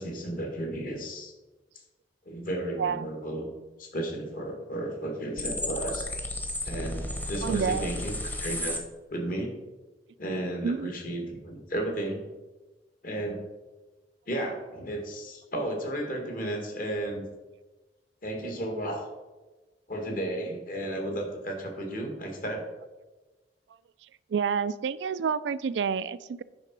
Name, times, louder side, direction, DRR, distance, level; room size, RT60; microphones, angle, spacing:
voice 1, 0.0-1.3 2.2-3.5 3.8-6.1 6.6-8.1 8.4-8.7 9.1-9.5 10.2-12.2 13.0-13.4 14.3-17.2 18.2-19.1 19.9-22.7, right 1 dB, 50° left, 2 dB, 1.7 m, -33 dB
voice 2, 2.8-3.1 7.4-8.0 10.6-10.9 24.3-26.4, right 6 dB, 75° right, 17 dB, 0.3 m, -29 dB
sound 1, 5.4-8.8, left 1 dB, 10° left, 0.9 m, -33 dB
9.7 x 3.8 x 5.9 m, 1.2 s
head